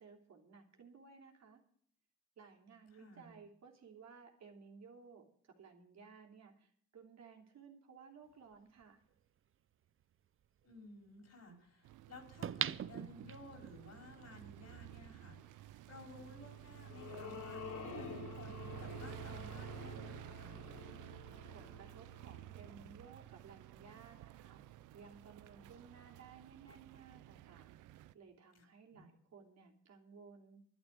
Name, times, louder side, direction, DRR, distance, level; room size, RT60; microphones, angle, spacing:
voice 1, 0.0-1.6 2.4-9.0 21.1-27.7 28.1-30.6, right 5 dB, 60° right, 2 dB, 3.1 m, -58 dB
voice 2, 2.9-3.4 10.6-20.6 28.5-28.6 28.9-29.1, left 3 dB, 55° left, 3 dB, 4.7 m, -56 dB
sound 1, 8.8-8.9 12.4-13.7 14.2-14.3, right 9 dB, 45° right, 0.6 m, -39 dB
sound 2, 11.8-28.1, right 14 dB, 90° right, 0.7 m, -52 dB
sound 3, 16.3-22.8, left 5 dB, 75° left, 4.4 m, -50 dB
12.0 x 11.0 x 6.5 m, 0.64 s
cardioid pair, 90°, 30 cm